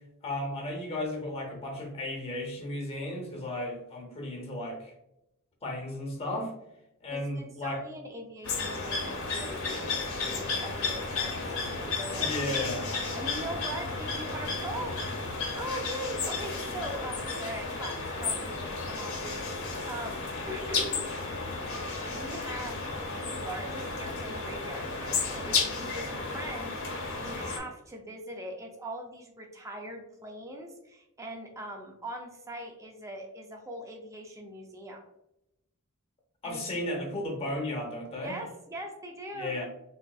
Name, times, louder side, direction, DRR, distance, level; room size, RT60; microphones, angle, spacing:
voice 1, 0.2-4.9 5.6-6.5 7.0-7.8 12.2-12.8 36.4-38.4 39.3-39.6, left 1 dB, 25° left, 1 dB, 0.6 m, -34 dB
voice 2, 7.1-12.7 13.1-15.0 15.6-20.2 20.5-21.1 22.0-35.0 36.4-36.6 38.2-39.6, right 1 dB, 15° right, 1 dB, 0.4 m, -41 dB
sound 1, 8.4-27.6, left 4 dB, 70° left, 0.8 m, -33 dB
sound 2, 10.2-15.2, equal, 90° right, 1.1 m, -44 dB
3.7 x 2.4 x 2.2 m, 0.86 s
head